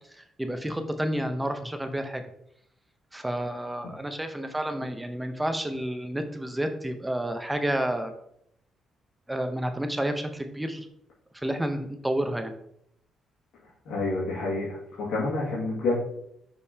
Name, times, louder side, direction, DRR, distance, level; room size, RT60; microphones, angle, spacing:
voice 1, 0.2-2.3 3.1-8.1 9.3-10.9 11.3-12.5, right 1 dB, 10° right, 7 dB, 0.8 m, -30 dB
voice 2, 13.9-15.9, left 2 dB, 80° left, -7 dB, 2.1 m, -28 dB
6.5 x 5.3 x 2.9 m, 0.72 s
cardioid pair, 90°, 0 cm